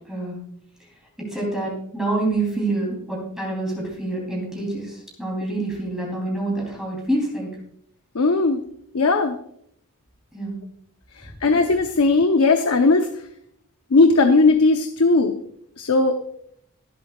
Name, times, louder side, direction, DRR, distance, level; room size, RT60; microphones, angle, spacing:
voice 1, 0.1-0.4 1.2-7.6 10.3-10.6, right 2 dB, 5° right, -3 dB, 3.2 m, -27 dB
voice 2, 8.1-8.6 8.9-9.4 11.4-13.1 13.9-15.4 15.8-16.2, left 3 dB, 75° left, 6 dB, 0.8 m, -17 dB
23.0 x 8.3 x 2.4 m, 0.71 s
head